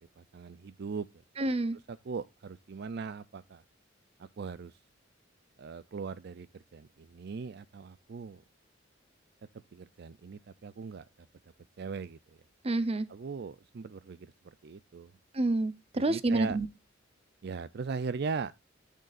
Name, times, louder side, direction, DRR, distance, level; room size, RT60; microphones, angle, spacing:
voice 1, 0.2-1.1 1.9-3.6 4.2-4.7 5.6-8.4 9.7-11.0 11.8-12.2 13.1-14.2 14.6-15.1 15.9-16.6 17.4-18.5, right 5 dB, 55° right, 0.4 m, -39 dB
voice 2, 1.4-1.8 12.6-13.1 15.3-16.7, right 2 dB, 30° right, 0.8 m, -28 dB
14.5 x 6.6 x 2.5 m
head